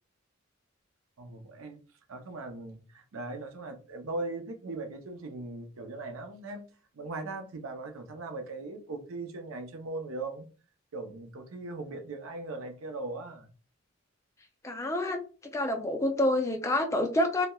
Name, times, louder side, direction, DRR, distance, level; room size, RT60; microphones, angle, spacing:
voice 1, 1.2-1.8 2.1-6.6 6.9-10.5 10.9-13.5, right 2 dB, 85° right, 0.5 m, -39 dB
voice 2, 14.6-15.2 15.5-17.5, left 1 dB, 15° left, 0.3 m, -27 dB
2.8 x 2.1 x 2.2 m
head